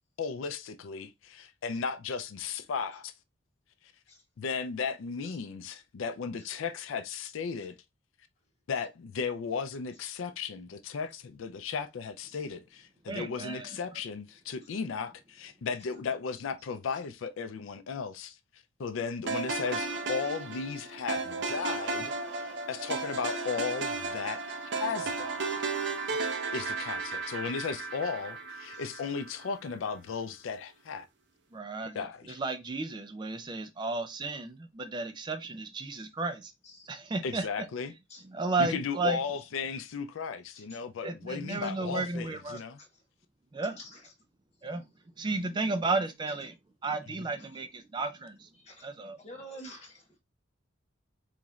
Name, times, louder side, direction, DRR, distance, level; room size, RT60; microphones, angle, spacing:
voice 1, 0.2-3.1 4.4-7.8 8.7-18.4 18.8-25.7 26.5-31.0 31.9-32.4 37.2-37.9 38.6-42.8, left 5 dB, 80° left, 0.4 m, -35 dB
voice 2, 13.1-13.8 26.1-26.3 31.5-32.0 32.4-36.5 36.8-37.5 38.3-39.2 41.0-42.6 43.5-43.8 44.6-44.8 45.2-46.5 46.8-48.5 48.8-49.2, right 3 dB, 25° right, 0.3 m, -33 dB
sound 1, 19.3-29.5, right 3 dB, 60° right, 0.6 m, -34 dB
voice 3, 20.2-20.6 22.6-22.7 28.7-28.8 35.9-36.0 36.6-36.9 38.1-38.2 40.5-40.8 41.5-41.6 42.5-43.0 43.8-44.1 46.3-46.4 47.4-47.5 48.5-48.9 49.2-50.2, equal, 35° left, 1.1 m, -50 dB
4.0 x 3.1 x 2.3 m
head